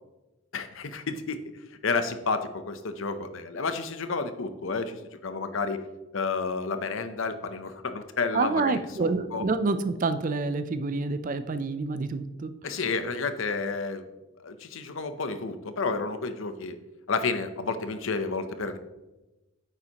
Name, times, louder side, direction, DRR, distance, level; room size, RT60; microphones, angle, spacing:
voice 1, 0.5-1.4 1.8-5.8 6.1-9.5 12.6-14.0 14.4-16.8 17.1-18.8, left 4 dB, 65° left, 10 dB, 0.7 m, -31 dB
voice 2, 8.3-12.5, right 3 dB, 40° right, 11 dB, 0.4 m, -28 dB
9.0 x 7.0 x 2.9 m, 1.0 s
head